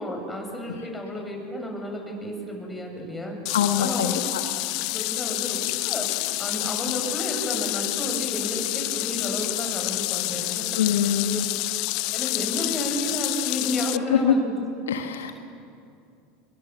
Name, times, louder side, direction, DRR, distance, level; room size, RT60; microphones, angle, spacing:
voice 1, 0.0-3.4 3.8-4.2 4.9-11.4 12.1-14.6, left 1 dB, 10° left, 1 dB, 7.5 m, -32 dB
voice 2, 3.5-4.4 10.8-11.4 14.1-14.3 14.9-15.3, left 8 dB, 75° left, 6 dB, 1.4 m, -23 dB
sound 1, 3.5-14.0, left 23 dB, 55° left, 0.6 m, -28 dB
26.5 x 22.5 x 7.2 m, 2.5 s
figure-of-eight pair, 80°, 0 cm